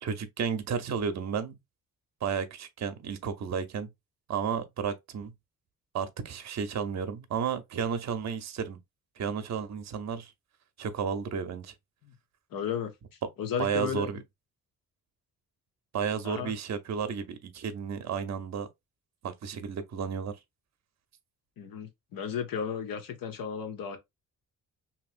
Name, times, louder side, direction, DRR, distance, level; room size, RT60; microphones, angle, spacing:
voice 1, 0.0-1.6 2.2-3.9 4.3-5.3 5.9-8.8 9.2-10.3 10.8-11.7 13.6-14.2 15.9-18.7 19.2-20.4, right 7 dB, 50° right, 0.7 m, -32 dB
voice 2, 12.5-12.9 13.4-14.1 16.2-16.5 21.6-24.0, left 7 dB, 75° left, 0.9 m, -34 dB
2.9 x 2.8 x 2.4 m
cardioid pair, 95°, 34 cm